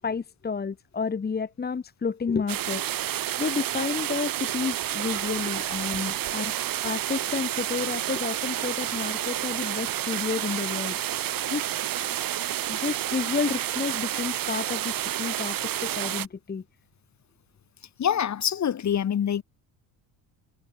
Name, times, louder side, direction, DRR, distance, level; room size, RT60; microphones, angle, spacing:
voice 1, 0.0-2.9 3.4-6.5 6.8-11.2 11.5-11.7 12.0-12.2 12.7-16.6, left 5 dB, 25° left, 1.5 m, -31 dB
sound 1, 2.5-16.3, right 12 dB, 55° right, 2.0 m, -30 dB
voice 2, 18.0-19.4, left 9 dB, 45° left, 2.4 m, -25 dB
cardioid pair, 105°, 40 cm